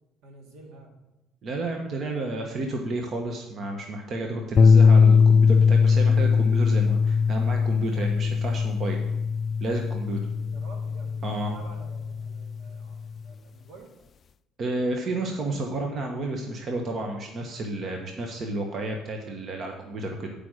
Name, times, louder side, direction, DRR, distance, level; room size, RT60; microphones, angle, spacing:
voice 1, 0.2-0.9 10.3-13.9, right 2 dB, 80° right, 2 dB, 2.0 m, -49 dB
voice 2, 1.4-9.0 9.6-10.2 11.2-11.5 14.6-20.3, right 2 dB, 50° right, 2 dB, 1.1 m, -31 dB
sound 1, 4.6-13.0, left 5 dB, 45° left, 0.3 m, -20 dB
9.0 x 5.1 x 6.4 m, 0.97 s
supercardioid pair, 90°, 0 cm